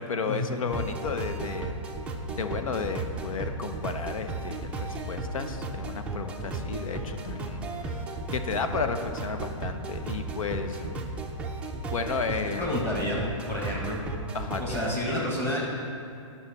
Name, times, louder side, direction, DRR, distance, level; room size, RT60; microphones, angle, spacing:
voice 1, 0.0-1.7 2.3-7.7 8.3-11.1 11.9-12.7 14.3-14.9, left 5 dB, 85° left, 8 dB, 0.8 m, -33 dB
sound 1, 0.7-14.9, right 2 dB, 5° right, 0.4 m, -35 dB
voice 2, 12.6-13.2 13.5-14.0 14.6-15.7, left 1 dB, 15° left, -3 dB, 1.5 m, -29 dB
11.0 x 5.6 x 4.2 m, 2.5 s
hypercardioid pair, 150°, 17 cm